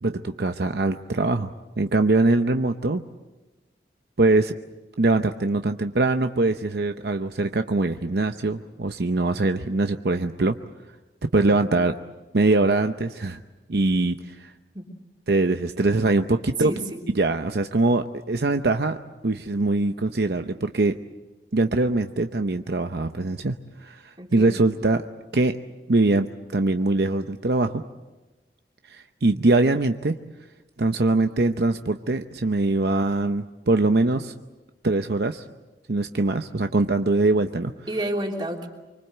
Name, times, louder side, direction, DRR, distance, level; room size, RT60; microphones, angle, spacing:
voice 1, 0.0-1.5 1.8-3.0 4.2-4.5 5.0-10.5 11.3-11.9 12.3-13.4 13.7-14.5 15.3-16.7 17.2-19.0 19.2-21.0 21.5-23.6 23.8-24.0 24.3-25.0 25.3-25.6 25.9-27.8 28.9-30.2 30.8-34.3 34.8-35.4 35.9-37.7, right 2 dB, 65° right, 7 dB, 0.8 m, -22 dB
voice 2, 16.6-17.0 24.2-24.6 37.9-38.7, right 1 dB, 25° right, 1 dB, 3.2 m, -30 dB
25.5 x 24.5 x 7.9 m, 1.2 s
head